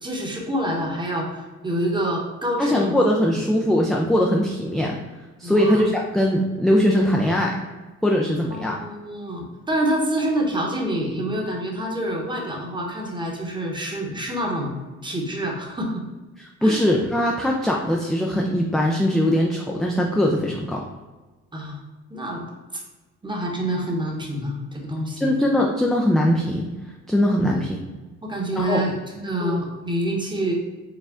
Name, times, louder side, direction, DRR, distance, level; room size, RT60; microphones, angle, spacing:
voice 1, 0.0-3.0 5.4-5.8 8.5-14.7 15.0-16.0 16.6-16.8 21.5-21.8 22.1-22.5 23.2-25.4 27.5-27.6 28.2-30.5, right 1 dB, 15° right, -1 dB, 1.0 m, -27 dB
voice 2, 2.6-5.0 5.4-7.6 8.0-8.8 16.6-20.8 25.2-26.7 27.1-27.8 28.6-28.8 29.4-29.6, equal, ahead, -1 dB, 0.3 m, -21 dB
4.8 x 2.2 x 3.6 m, 1.2 s
cardioid pair, 90°, 30 cm